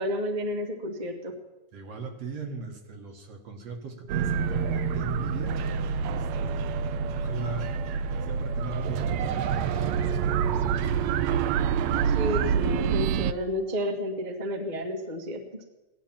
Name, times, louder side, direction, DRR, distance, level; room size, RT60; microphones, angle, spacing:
voice 1, 0.0-1.3 12.0-15.6, left 1 dB, 20° right, 2 dB, 1.2 m, -31 dB
voice 2, 1.7-7.7 8.2-11.1, right 4 dB, 60° right, 3 dB, 2.3 m, -40 dB
sound 1, 4.1-13.3, right 7 dB, 75° right, 1.7 m, -27 dB
17.0 x 12.0 x 7.3 m, 1.1 s
omnidirectional pair, 3.5 m